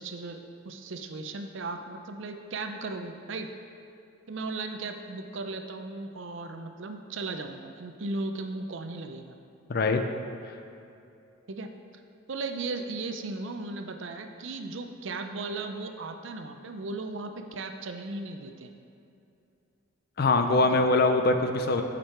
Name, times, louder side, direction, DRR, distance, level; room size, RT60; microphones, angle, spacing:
voice 1, 0.0-3.5 4.3-9.4 11.5-11.7 12.3-18.7 20.7-20.8, right 3 dB, 60° right, 6 dB, 0.5 m, -36 dB
voice 2, 9.7-10.0 20.2-21.8, left 2 dB, 45° left, 6 dB, 0.5 m, -23 dB
8.8 x 5.2 x 4.3 m, 2.7 s
head